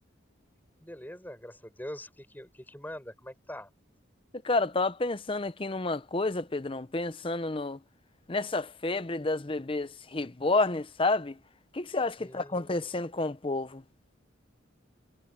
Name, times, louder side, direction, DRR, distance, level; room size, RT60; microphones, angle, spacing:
voice 1, 0.8-3.7 12.2-12.6, left 1 dB, 10° left, 7.7 m, -43 dB
voice 2, 4.4-7.8 8.3-11.4 11.7-13.8, left 2 dB, 25° left, 0.8 m, -30 dB
head